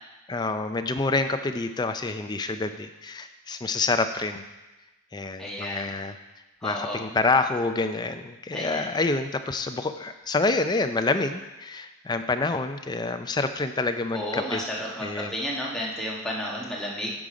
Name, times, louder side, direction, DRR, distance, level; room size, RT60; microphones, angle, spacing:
voice 1, 0.3-4.4 5.1-6.2 6.6-14.6 15.0-15.3, left 3 dB, 20° left, 8 dB, 0.4 m, -27 dB
voice 2, 5.4-5.9 6.6-7.0 8.5-8.9 14.1-17.1, equal, 5° left, -4 dB, 1.3 m, -32 dB
9.6 x 5.1 x 5.0 m, 1.1 s
head